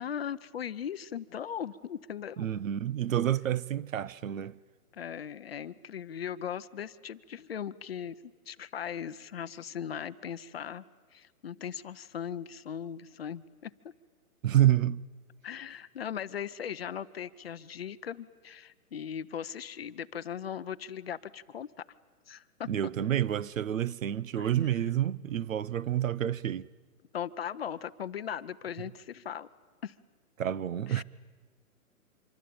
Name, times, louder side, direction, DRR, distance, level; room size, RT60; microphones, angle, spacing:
voice 1, 0.0-2.5 4.9-8.1 8.5-10.8 11.1-13.7 15.4-21.8 22.3-22.7 24.4-24.7 27.1-29.5 29.8-29.9 30.9-31.0, left 8 dB, 40° left, 0.7 m, -38 dB
voice 2, 2.4-4.6 14.4-15.0 22.7-26.7 30.4-31.0, right 11 dB, 60° right, 0.8 m, -28 dB
25.5 x 24.5 x 8.7 m
hypercardioid pair, 165°, 45 cm